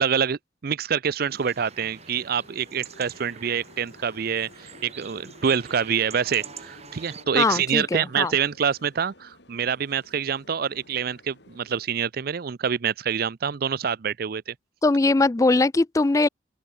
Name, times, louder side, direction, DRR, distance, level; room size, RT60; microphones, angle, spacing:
voice 1, 0.0-14.5, right 7 dB, 50° right, 0.5 m, -26 dB
sound 1, 1.2-11.9, left 2 dB, 60° left, 4.7 m, -53 dB
sound 2, 1.3-7.2, right 6 dB, 35° right, 5.7 m, -45 dB
voice 2, 7.3-8.3 14.8-16.3, left 3 dB, 15° left, 0.3 m, -21 dB
open air
head